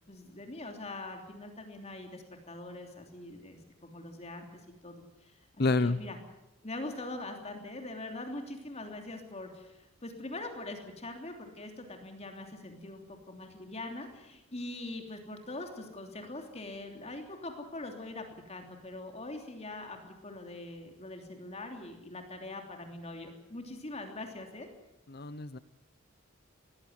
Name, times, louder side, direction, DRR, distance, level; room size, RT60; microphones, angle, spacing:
voice 1, 0.1-4.9 5.2-6.2 6.6-24.7, left 2 dB, 35° left, 4 dB, 3.1 m, -43 dB
voice 2, 5.6-6.0 25.1-25.6, left 3 dB, 55° left, 14 dB, 0.8 m, -28 dB
21.5 x 16.0 x 9.5 m, 0.92 s
head